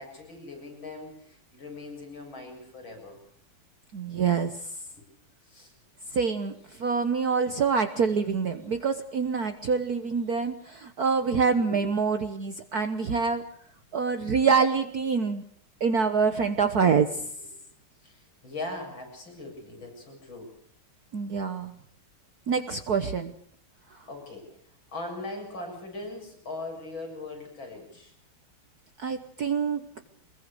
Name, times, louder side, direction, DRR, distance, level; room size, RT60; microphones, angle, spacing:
voice 1, 0.0-3.2 4.9-5.0 5.4-5.7 11.7-11.8 17.4-17.5 18.0-20.5 24.1-24.6 24.9-28.1, left 2 dB, 60° left, 3 dB, 8.1 m, -40 dB
voice 2, 3.9-4.5 6.1-13.4 13.9-15.4 15.8-17.3 21.1-21.7 22.5-23.3 29.0-29.9, right 5 dB, 50° right, 8 dB, 1.4 m, -26 dB
24.0 x 21.5 x 6.8 m, 0.64 s
omnidirectional pair, 2.4 m